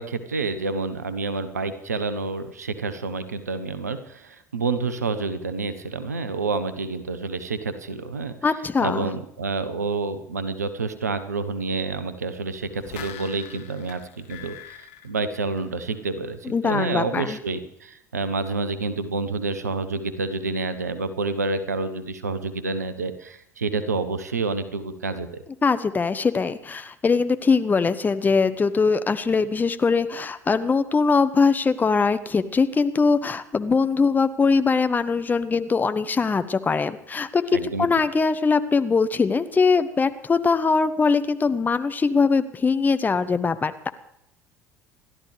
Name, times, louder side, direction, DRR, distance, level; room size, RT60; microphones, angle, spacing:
voice 1, 0.0-8.3 8.8-25.4 37.5-37.9, right 3 dB, 80° right, 12 dB, 1.1 m, -28 dB
voice 2, 8.4-9.1 16.4-17.4 25.6-43.9, left 4 dB, 20° left, 11 dB, 1.0 m, -22 dB
sound 1, 12.6-16.1 16.5-16.6, left 10 dB, 60° left, 1.5 m, -43 dB
28.5 x 12.5 x 3.4 m, 0.78 s
figure-of-eight pair, 65°, 9 cm